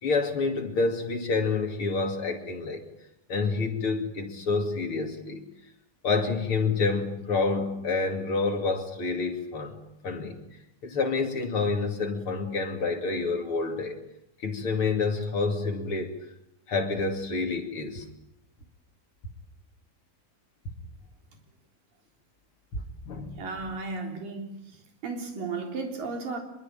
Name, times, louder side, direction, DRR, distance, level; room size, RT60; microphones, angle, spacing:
voice 1, 0.0-2.8 3.3-5.4 6.0-9.8 10.0-10.4 10.8-14.0 14.4-16.1 16.7-18.0 22.7-23.4, left 4 dB, 40° left, 4 dB, 3.1 m, -28 dB
voice 2, 23.4-24.8 25.0-26.4, right 4 dB, 65° right, 4 dB, 5.4 m, -34 dB
25.0 x 22.5 x 9.0 m, 0.81 s
omnidirectional pair, 4.3 m